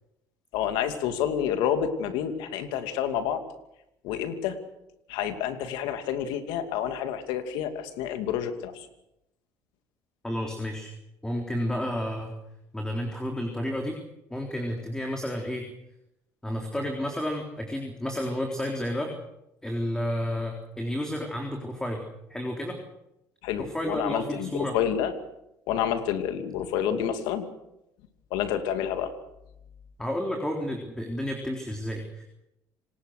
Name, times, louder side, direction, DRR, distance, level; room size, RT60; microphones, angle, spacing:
voice 1, 0.5-3.4 4.0-4.6 5.1-8.9 23.4-25.1 25.7-27.5 28.3-29.1, left 9 dB, 80° left, 8 dB, 2.6 m, -29 dB
voice 2, 10.2-10.9 11.2-12.3 12.7-14.0 14.3-15.7 16.4-19.1 19.6-22.0 22.3-22.8 23.6-24.8 30.0-32.2, equal, 10° left, 2 dB, 3.9 m, -31 dB
27.0 x 19.5 x 6.7 m, 0.86 s
supercardioid pair, 85°, 8 cm